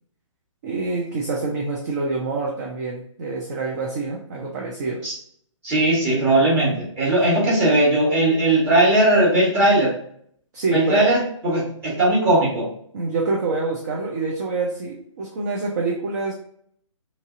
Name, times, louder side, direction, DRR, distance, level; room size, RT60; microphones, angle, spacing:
voice 1, 0.6-5.0 10.5-11.1 12.9-16.3, right 3 dB, 35° right, -2 dB, 0.5 m, -26 dB
voice 2, 5.6-10.0 10.7-12.7, right 1 dB, 15° right, -8 dB, 1.3 m, -18 dB
2.9 x 2.6 x 2.5 m, 0.65 s
figure-of-eight pair, 135°, 17 cm